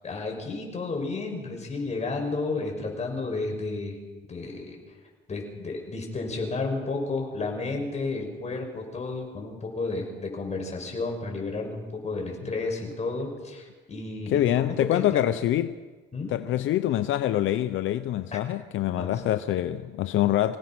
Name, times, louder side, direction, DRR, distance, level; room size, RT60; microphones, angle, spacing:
voice 1, 0.0-4.0 4.3-4.8 5.3-15.2 16.1-16.3 19.0-19.1, left 3 dB, 35° left, 5.9 m, -32 dB
voice 2, 14.3-15.8 16.3-20.6, left 13 dB, 75° left, 0.7 m, -25 dB
26.0 x 17.0 x 6.0 m
cardioid pair, 100°, 20 cm